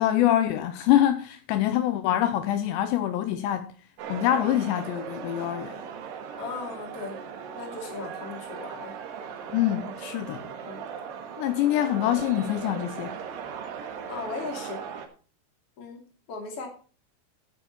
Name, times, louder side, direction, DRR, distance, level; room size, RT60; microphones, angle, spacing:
voice 1, 0.0-3.7 4.1-5.8 9.5-10.4 11.4-13.2, left 12 dB, 85° left, 2.6 m, -25 dB
sound 1, 4.0-15.1, right 7 dB, 65° right, 3.2 m, -38 dB
voice 2, 6.4-7.2 7.5-9.0 10.4-10.8 14.1-14.8 15.8-16.7, left 4 dB, 35° left, 3.1 m, -37 dB
12.5 x 9.1 x 4.2 m
omnidirectional pair, 5.9 m